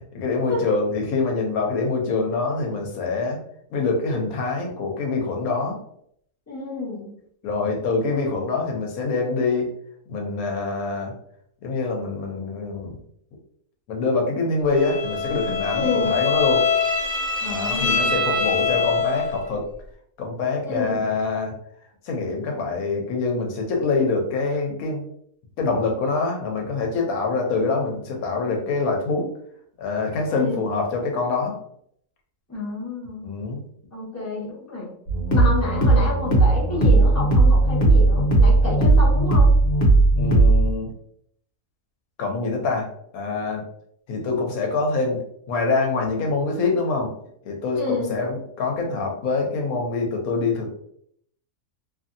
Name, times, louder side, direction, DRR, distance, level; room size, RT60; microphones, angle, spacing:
voice 1, 0.0-3.4 3.7-5.8 7.4-9.7 10.1-11.1 11.6-13.0 13.9-16.6 17.5-19.6 20.2-21.5 22.0-25.0 25.6-29.3 29.8-31.6 33.2-33.6 40.2-40.9 42.2-42.9 43.1-43.7 44.1-45.2 45.5-47.1 47.5-50.7, left 3 dB, 90° left, 1 dB, 1.1 m, -25 dB
voice 2, 6.5-7.1 15.7-16.2 17.4-18.2 20.6-20.9 30.3-30.6 32.5-33.3 33.9-34.9 35.3-39.5 47.7-48.1, left 3 dB, 15° left, -6 dB, 1.0 m, -29 dB
Bowed string instrument, 14.8-19.4, left 5 dB, 70° right, 1.2 m, -24 dB
sound 1, 35.1-40.7, right 2 dB, 55° left, 0.9 m, -17 dB
2.8 x 2.5 x 2.6 m, 0.68 s
omnidirectional pair, 1.5 m